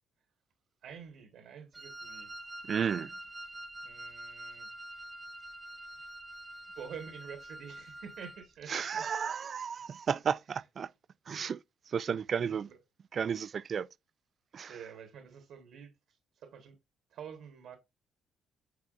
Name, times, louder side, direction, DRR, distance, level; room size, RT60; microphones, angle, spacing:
voice 1, 0.8-2.3 3.8-4.7 6.7-9.1 11.4-11.5 12.0-12.8 14.7-16.8 17.1-17.8, right 7 dB, 75° right, 1.4 m, -48 dB
Wind instrument woodwind instrument, 1.7-8.5, right 1 dB, 25° right, 0.8 m, -46 dB
voice 2, 2.7-3.1 8.7-10.9 11.3-11.6 11.9-12.7 13.1-13.9 14.5-14.7, right 7 dB, 50° right, 0.3 m, -33 dB
8.3 x 4.5 x 2.5 m
cardioid pair, 90°, 0 cm